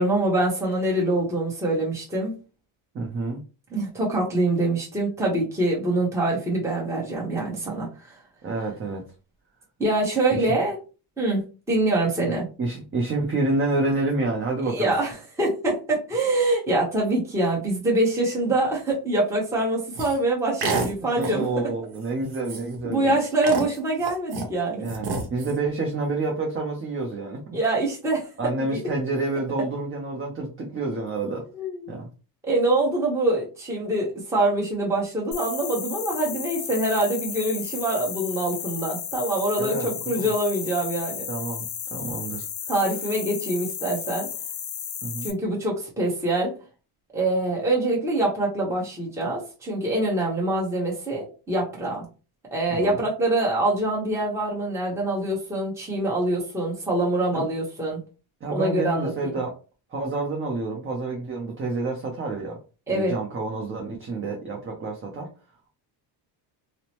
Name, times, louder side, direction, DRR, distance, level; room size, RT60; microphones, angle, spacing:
voice 1, 0.0-2.3 3.7-8.1 9.8-10.8 11.2-12.5 14.6-21.5 22.8-24.9 27.5-28.3 28.7-28.8 31.5-32.0 32.4-41.3 42.7-44.3 45.2-46.5 47.1-52.1 52.5-58.0 58.5-59.4 62.9-63.1, right 2 dB, 5° right, -4 dB, 0.9 m, -25 dB
voice 2, 2.9-3.4 8.4-9.0 10.3-10.5 12.3-15.0 21.2-23.2 24.8-27.4 28.4-31.4 31.9-32.1 39.6-40.3 41.3-41.7 41.9-42.5 45.0-45.3 52.7-53.0 57.3-57.4 58.4-59.6 59.9-62.6 62.9-65.3, right 2 dB, 25° right, 0 dB, 0.6 m, -28 dB
sound 1, 20.0-20.2 20.6-20.9 21.2-21.4 21.9-22.1 22.3-22.8 23.4-24.5 24.8-25.6, right 4 dB, 50° right, 0.9 m, -29 dB
sound 2, 35.3-45.3, left 8 dB, 50° left, 0.7 m, -34 dB
2.8 x 2.1 x 2.9 m, 0.34 s
cardioid pair, 105°, 49 cm